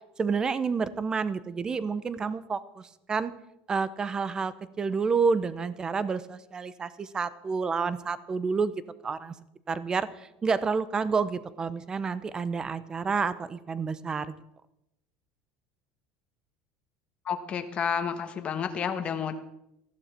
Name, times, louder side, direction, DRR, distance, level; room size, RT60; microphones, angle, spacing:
voice 1, 0.2-3.3 3.7-8.7 9.0-9.3 9.7-14.3, right 5 dB, 15° right, 16 dB, 0.7 m, -29 dB
voice 2, 17.2-19.4, left 7 dB, 30° left, 7 dB, 1.4 m, -30 dB
18.5 x 14.5 x 4.4 m, 0.84 s
cardioid pair, 160°, 4 cm